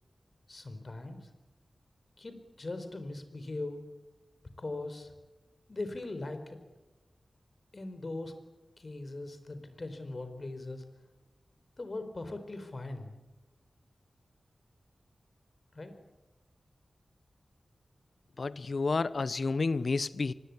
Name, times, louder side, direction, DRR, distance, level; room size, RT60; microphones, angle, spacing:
voice 1, 0.5-1.3 2.2-3.8 4.6-5.1 5.7-6.6 7.7-8.3 8.8-10.8 11.8-13.1 15.7-15.9, left 2 dB, 45° left, 4.6 m, -40 dB
voice 2, 18.4-20.3, left 4 dB, 65° left, 0.9 m, -30 dB
25.0 x 21.0 x 9.9 m
wide cardioid pair, 85°, 0 cm